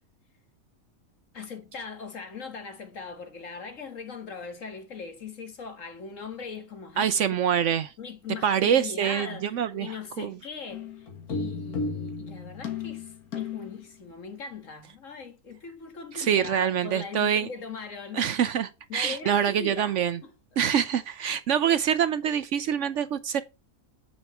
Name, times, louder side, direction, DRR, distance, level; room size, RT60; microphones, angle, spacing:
voice 1, 1.3-7.1 8.0-18.3 18.9-20.0 20.2-20.3, left 5 dB, 60° left, 2.1 m, -40 dB
voice 2, 7.0-7.9 8.4-10.3 16.1-17.5 18.1-20.2 20.6-23.4, right 8 dB, 65° right, 0.9 m, -25 dB
sound 1, 10.7-13.8, left 4 dB, 90° left, 2.0 m, -34 dB
10.0 x 5.4 x 4.3 m
omnidirectional pair, 1.5 m